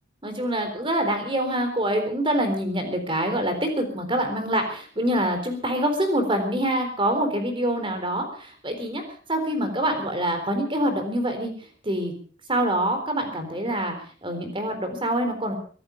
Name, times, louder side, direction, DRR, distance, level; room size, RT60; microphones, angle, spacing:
voice 1, 0.2-9.0 9.3-11.5 11.8-12.1 12.5-13.9 14.2-15.5, right 1 dB, 25° right, 6 dB, 3.8 m, -25 dB
23.5 x 11.5 x 5.1 m, 0.43 s
head